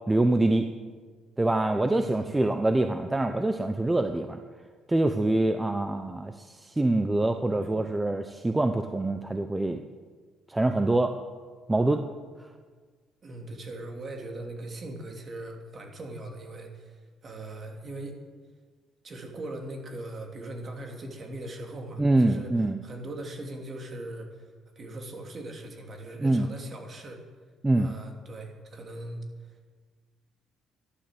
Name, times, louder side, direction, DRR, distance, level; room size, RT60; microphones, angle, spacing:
voice 1, 0.1-0.7 1.4-4.4 4.9-9.8 10.5-11.1 11.7-12.0 22.0-22.8 26.2-26.5 27.6-27.9, right 2 dB, 15° right, 7 dB, 0.8 m, -25 dB
voice 2, 1.9-2.3 7.6-7.7 13.2-18.2 19.0-24.5 24.7-27.2 27.8-29.2, right 1 dB, 40° right, 2 dB, 3.1 m, -40 dB
13.5 x 11.5 x 7.7 m, 1.5 s
cardioid pair, 110°, 0 cm